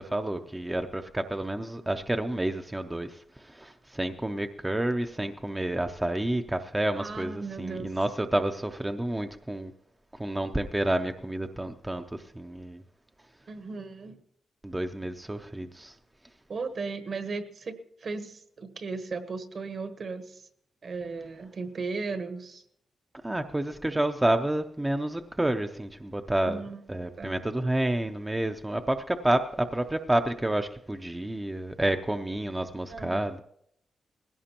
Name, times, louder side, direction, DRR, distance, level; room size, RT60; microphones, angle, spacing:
voice 1, 0.0-9.7 10.1-12.8 14.6-16.0 23.2-26.6 26.9-33.4, right 1 dB, 10° right, 6 dB, 0.5 m, -29 dB
voice 2, 7.0-7.9 13.5-14.2 16.5-20.5 20.8-22.6 26.5-26.8 27.2-27.3 32.9-33.2, right 4 dB, 50° right, 8 dB, 1.1 m, -36 dB
20.0 x 16.5 x 2.9 m, 0.72 s
wide cardioid pair, 130°, 0 cm